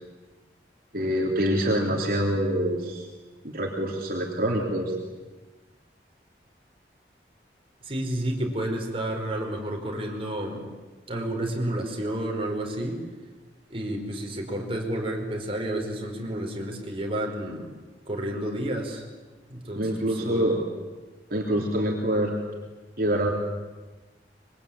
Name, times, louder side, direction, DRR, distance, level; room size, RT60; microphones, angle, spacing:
voice 1, 0.9-3.0 3.4-4.9 19.7-20.6 21.3-22.3 23.0-23.3, right 1 dB, 55° right, -1 dB, 3.6 m, -25 dB
voice 2, 7.8-10.7 11.1-13.0 13.7-17.7 18.0-19.0 19.5-20.5 21.5-21.6, right 1 dB, 30° right, 0 dB, 5.0 m, -30 dB
25.5 x 23.5 x 8.9 m, 1.2 s
head